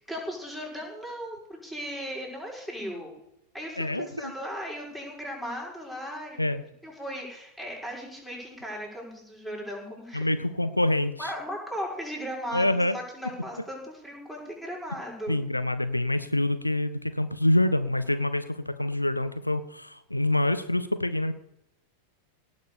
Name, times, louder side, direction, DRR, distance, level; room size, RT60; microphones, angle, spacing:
voice 1, 0.1-3.1 3.5-6.4 6.8-10.3 11.2-15.4, equal, 5° left, -3 dB, 6.0 m, -37 dB
voice 2, 3.8-4.3 6.4-6.6 10.1-11.3 12.5-13.0 15.3-21.3, left 1 dB, 85° left, 12 dB, 0.7 m, -26 dB
18.0 x 6.7 x 7.0 m, 0.83 s
figure-of-eight pair, 90°, 0 cm